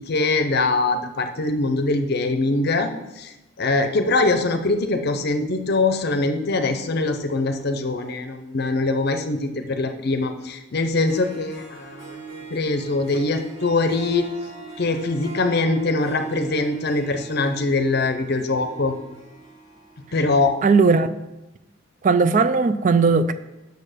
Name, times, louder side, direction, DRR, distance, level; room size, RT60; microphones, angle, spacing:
voice 1, 0.0-2.9 3.2-3.3 3.6-14.3 14.8-19.0 20.1-20.5, left 3 dB, 55° left, 0.6 m, -23 dB
Harp, 10.8-10.9 11.1-20.6, right 4 dB, 75° right, 1.8 m, -40 dB
voice 2, 20.6-21.1 22.0-23.3, right 4 dB, 40° right, 0.4 m, -17 dB
6.6 x 6.6 x 5.0 m
head